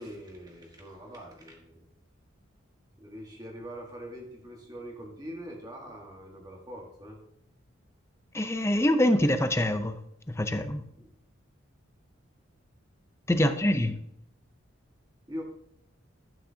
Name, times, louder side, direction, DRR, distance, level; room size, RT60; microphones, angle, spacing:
voice 1, 0.0-1.9 3.0-7.2 10.9-11.1 13.6-13.7 15.3-15.4, equal, 20° right, 1.4 m, -43 dB
voice 2, 8.3-10.0 10.3-10.8 13.3-14.0, left 1 dB, 15° left, 0.5 m, -25 dB
11.5 x 8.8 x 2.8 m
head